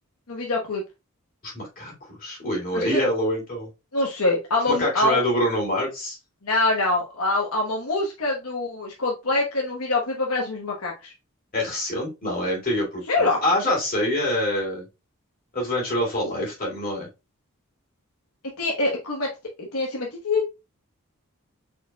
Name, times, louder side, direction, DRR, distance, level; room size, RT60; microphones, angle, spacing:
voice 1, 0.3-0.8 2.7-3.0 3.9-5.2 6.4-11.1 13.1-13.4 18.6-19.3 19.6-20.4, left 2 dB, 80° left, -1 dB, 1.1 m, -24 dB
voice 2, 1.4-1.9 2.2-3.7 4.7-6.2 11.5-14.9 15.5-17.1, left 1 dB, 40° left, -2 dB, 2.6 m, -25 dB
4.5 x 4.4 x 2.3 m, 0.25 s
head